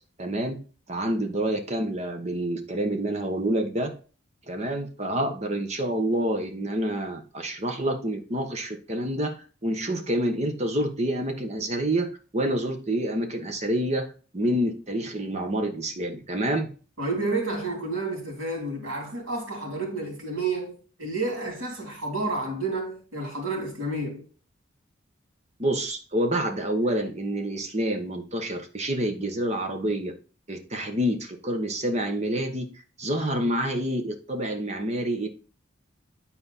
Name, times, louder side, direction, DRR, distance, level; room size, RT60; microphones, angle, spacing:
voice 1, 0.2-0.6 0.9-3.9 4.5-9.4 9.6-12.1 12.3-14.1 14.3-16.7 25.6-30.1 30.5-32.7 33.0-35.3, right 1 dB, 35° right, 1.2 m, -27 dB
voice 2, 17.0-24.2, right 2 dB, 85° right, 3.3 m, -30 dB
9.2 x 4.4 x 4.2 m
head